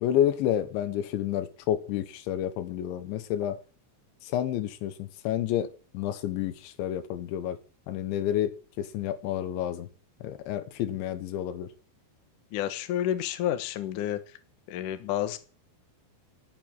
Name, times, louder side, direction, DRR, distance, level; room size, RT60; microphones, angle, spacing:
voice 1, 0.0-3.6 4.3-5.7 5.9-7.6 7.9-8.5 8.8-9.9 10.2-11.7, left 11 dB, 70° left, 3.3 m, -29 dB
voice 2, 12.5-14.2 14.7-15.4, left 11 dB, 90° left, 1.8 m, -30 dB
12.0 x 8.6 x 9.2 m
omnidirectional pair, 5.8 m